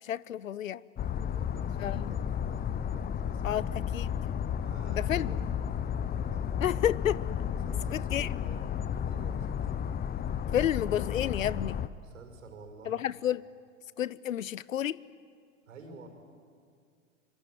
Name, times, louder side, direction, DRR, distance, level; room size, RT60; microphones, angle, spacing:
voice 1, 0.0-0.8 1.8-2.2 3.4-3.7 3.9-4.1 4.9-5.4 6.6-7.2 7.9-8.3 10.5-11.8 12.9-13.4 14.0-15.0, left 11 dB, 85° left, 22 dB, 0.7 m, -30 dB
sound 1, 1.0-11.9, left 8 dB, 25° left, 0.9 m, -33 dB
voice 2, 1.1-3.8 4.6-5.4 6.2-6.4 7.6-8.7 9.0-9.7 12.0-13.0 15.6-16.1, right 4 dB, 75° right, 5 dB, 5.6 m, -50 dB
25.5 x 24.0 x 9.5 m, 2.2 s
hypercardioid pair, 95°, 39 cm